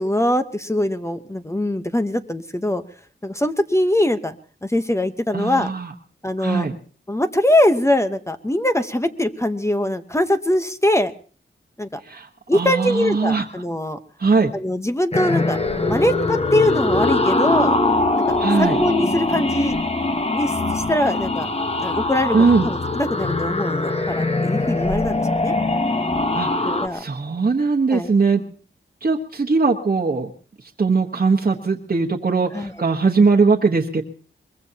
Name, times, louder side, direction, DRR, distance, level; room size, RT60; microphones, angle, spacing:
voice 1, 0.0-2.8 3.2-4.4 4.6-5.7 6.2-6.7 7.1-11.1 11.8-12.0 12.5-14.0 14.5-15.6 15.9-17.8 18.3-19.8 20.3-21.5 21.8-25.5 26.6-27.0 27.9-28.1 32.5-32.7, left 1 dB, 15° left, 8 dB, 1.0 m, -22 dB
voice 2, 5.3-5.9 6.4-6.7 12.0-13.4 14.2-14.5 18.4-18.8 22.3-22.7 26.3-28.4 29.0-30.3 30.8-34.0, right 4 dB, 45° right, 0 dB, 1.3 m, -20 dB
sound 1, 15.1-26.9, left 2 dB, 30° left, 1.3 m, -22 dB
23.0 x 21.5 x 2.9 m, 0.40 s
wide cardioid pair, 75°, 21 cm